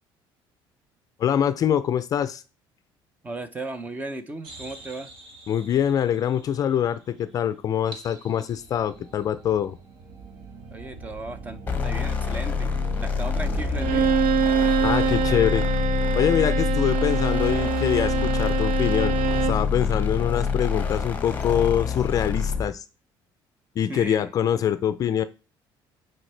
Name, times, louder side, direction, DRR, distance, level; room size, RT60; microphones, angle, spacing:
voice 1, 1.2-2.4 5.5-9.8 14.8-15.7 16.1-22.8 23.8-25.2, left 9 dB, 40° left, 13 dB, 0.4 m, -24 dB
voice 2, 3.2-5.1 10.7-12.7 13.0-14.2 23.9-24.3, right 2 dB, 15° right, 11 dB, 0.6 m, -36 dB
sound 1, 4.4-7.3 7.9-14.1, right 3 dB, 55° right, 1.6 m, -40 dB
sound 2, 11.7-22.7, left 5 dB, 20° left, 1.0 m, -26 dB
Bowed string instrument, 13.8-19.7, right 7 dB, 90° right, 0.5 m, -25 dB
8.9 x 4.4 x 3.3 m, 0.33 s
cardioid pair, 155°, 10 cm